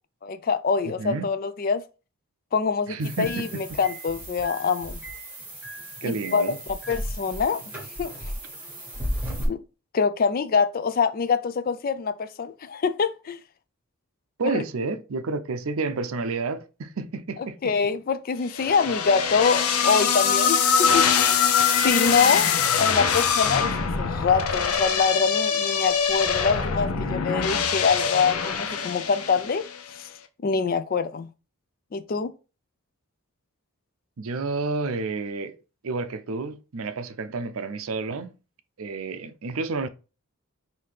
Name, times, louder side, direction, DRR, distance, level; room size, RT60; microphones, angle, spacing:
voice 1, 0.2-1.8 2.5-5.0 6.0-6.4 6.7-7.6 8.0-8.3 9.5-9.6 9.9-13.4 14.5-14.6 17.6-29.6 30.0-30.1 30.4-31.3 31.9-32.3, left 5 dB, 40° left, 0.3 m, -25 dB
voice 2, 0.8-1.3 2.9-3.8 6.0-6.6 14.4-17.7 34.2-35.6 35.8-38.4 38.8-39.9, right 3 dB, 75° right, 0.5 m, -30 dB
sound 1, 3.0-9.5, equal, 10° right, 1.3 m, -35 dB
sound 2, 18.5-29.8, left 6 dB, 85° left, 0.6 m, -23 dB
5.6 x 2.7 x 3.3 m
head